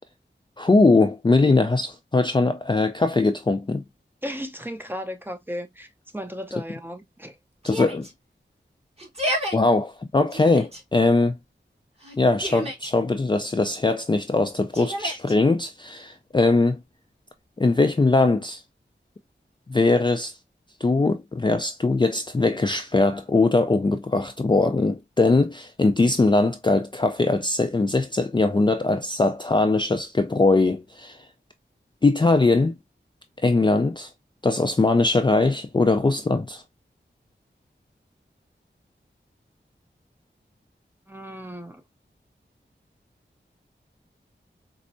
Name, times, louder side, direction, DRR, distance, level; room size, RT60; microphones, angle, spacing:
voice 1, 0.6-3.8 7.6-8.1 9.5-11.4 12.2-16.8 17.6-18.6 19.7-20.3 20.8-31.2 32.0-32.8 33.4-34.1 34.4-36.6, left 3 dB, 25° left, 0.4 m, -21 dB
voice 2, 4.2-7.4 41.1-41.8, equal, 10° right, 0.6 m, -35 dB
Yell, 7.6-8.1 9.0-9.6 10.3-10.8 12.0-12.9 14.7-15.3, equal, 30° right, 1.3 m, -31 dB
4.3 x 2.0 x 2.5 m
wide cardioid pair, 50°, 20 cm